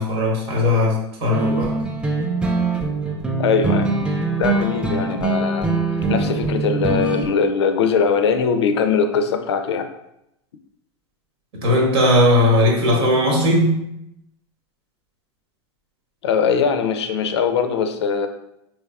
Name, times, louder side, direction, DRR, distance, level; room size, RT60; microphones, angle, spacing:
voice 1, 0.0-1.8 11.5-13.8, left 1 dB, 70° right, -1 dB, 1.1 m, -18 dB
sound 1, 1.3-7.3, right 3 dB, 5° right, 0.4 m, -22 dB
voice 2, 3.4-3.9 4.4-5.7 6.1-9.9 16.2-18.3, left 6 dB, 80° left, 7 dB, 0.4 m, -21 dB
3.4 x 3.1 x 2.3 m, 0.82 s
hypercardioid pair, 105°, 14 cm